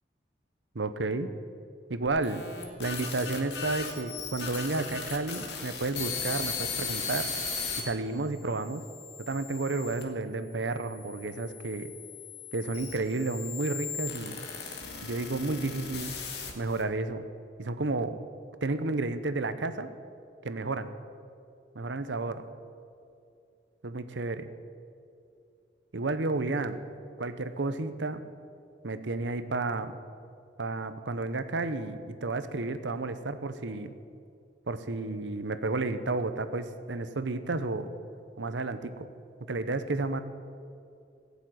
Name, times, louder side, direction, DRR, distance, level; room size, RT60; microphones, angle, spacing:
voice 1, 0.7-1.3 1.9-2.4 2.8-7.3 7.8-8.8 9.2-11.9 12.5-14.4 15.0-16.1 16.6-17.2 17.6-18.2 18.6-19.9 20.4-20.9 21.7-22.4 23.8-24.5 25.9-26.9 27.2-28.2 28.8-30.0 30.6-33.9 34.7-37.9 38.4-39.1 39.5-40.2, right 3 dB, 90° right, 11 dB, 0.9 m, -31 dB
sound 1, 2.1-7.8 8.5-10.0 10.8-16.8, left 5 dB, 65° left, 2.1 m, -37 dB
17.0 x 7.2 x 9.3 m, 2.4 s
head